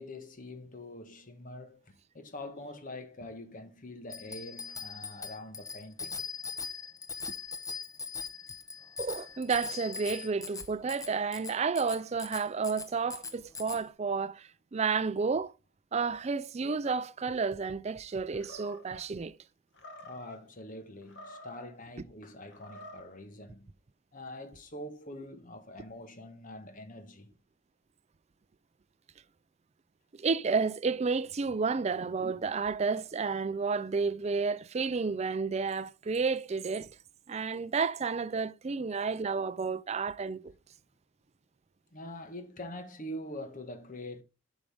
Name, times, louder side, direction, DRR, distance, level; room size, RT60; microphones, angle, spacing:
voice 1, 0.0-6.2 20.0-23.7 24.1-27.3 41.9-44.2, left 1 dB, 40° left, 1.3 m, -44 dB
Bicycle bell, 4.1-13.8, left 5 dB, 15° left, 1.0 m, -41 dB
voice 2, 9.0-15.5 15.9-19.4 30.1-36.9 37.3-40.5, right 5 dB, 35° right, 0.4 m, -31 dB
Animal, 18.3-19.1 19.7-20.4 21.0-21.8 22.5-23.1, left 1 dB, 60° left, 1.7 m, -49 dB
8.9 x 6.3 x 3.5 m
head